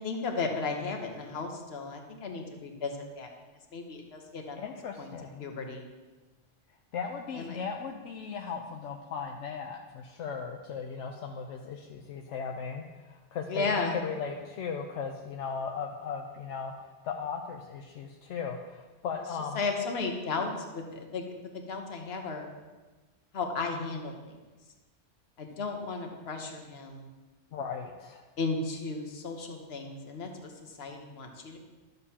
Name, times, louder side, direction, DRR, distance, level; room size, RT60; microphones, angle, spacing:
voice 1, 0.0-3.3 3.7-4.7 5.0-5.1 5.4-5.9 7.3-7.6 13.5-14.0 19.5-21.2 21.5-22.5 23.3-24.4 25.4-27.1 28.4-31.6, left 4 dB, 60° left, 3 dB, 1.2 m, -34 dB
voice 2, 4.6-5.5 6.9-16.7 17.0-19.6 27.5-28.2, left 6 dB, 75° left, 2 dB, 0.9 m, -37 dB
12.0 x 6.6 x 2.8 m, 1.2 s
omnidirectional pair, 1.2 m